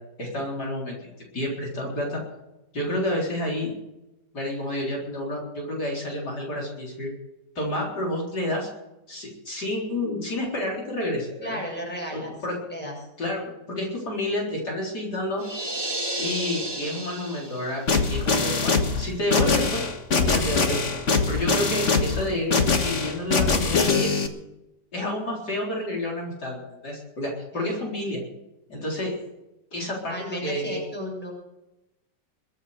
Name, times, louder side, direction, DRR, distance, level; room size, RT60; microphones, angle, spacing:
voice 1, 0.2-2.2 2.7-3.7 4.3-7.1 7.6-8.7 9.1-11.6 12.1-12.6 13.2-13.4 13.7-15.4 16.1-20.8 21.3-24.3 24.9-26.6 26.8-28.2 28.7-29.2 29.7-30.8, left 1 dB, 65° left, -2 dB, 4.6 m, -29 dB
voice 2, 11.4-12.3 12.7-13.0 27.5-27.9 30.1-31.3, left 1 dB, 5° left, -2 dB, 7.0 m, -34 dB
sound 1, 15.4-17.9, right 1 dB, 15° right, 1.7 m, -32 dB
sound 2, 17.9-24.3, left 4 dB, 45° left, 1.8 m, -23 dB
22.5 x 9.2 x 6.7 m, 0.92 s
omnidirectional pair, 1.9 m